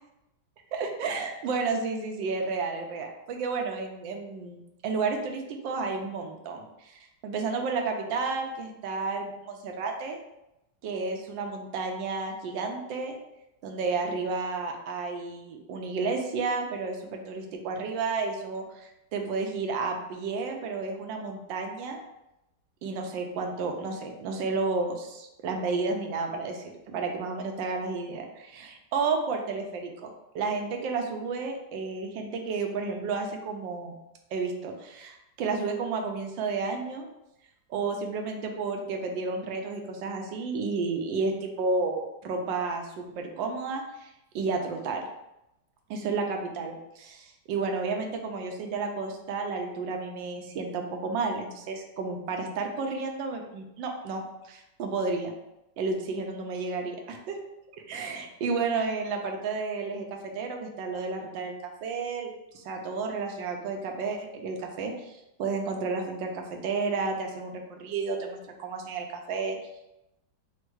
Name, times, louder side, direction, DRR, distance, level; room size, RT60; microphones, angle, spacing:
voice 1, 0.7-4.6 4.8-10.2 10.8-13.1 13.6-22.0 22.8-30.1 30.3-33.9 34.3-37.1 37.7-45.0 45.9-55.3 55.8-57.4 57.9-61.5 61.8-69.6, right 4 dB, 85° right, 3 dB, 1.4 m, -32 dB
4.4 x 2.4 x 4.5 m, 0.90 s
omnidirectional pair, 2.0 m